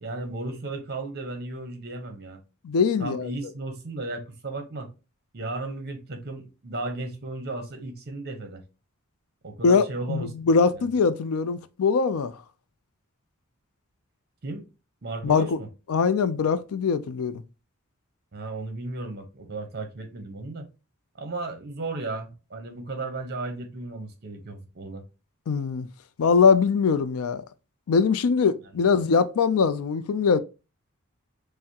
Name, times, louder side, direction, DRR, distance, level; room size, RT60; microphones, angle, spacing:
voice 1, 0.0-2.4 3.0-4.9 5.3-8.6 9.4-10.3 10.8-10.9 14.4-14.6 15.0-15.7 18.3-20.7 21.2-25.0 28.8-28.9, right 2 dB, 50° right, 0.9 m, -35 dB
voice 2, 2.6-3.3 9.6-12.3 15.2-15.6 15.9-17.4 25.5-25.9 26.2-27.4 27.9-30.4, left 5 dB, 85° left, 0.4 m, -22 dB
5.6 x 2.1 x 2.8 m
head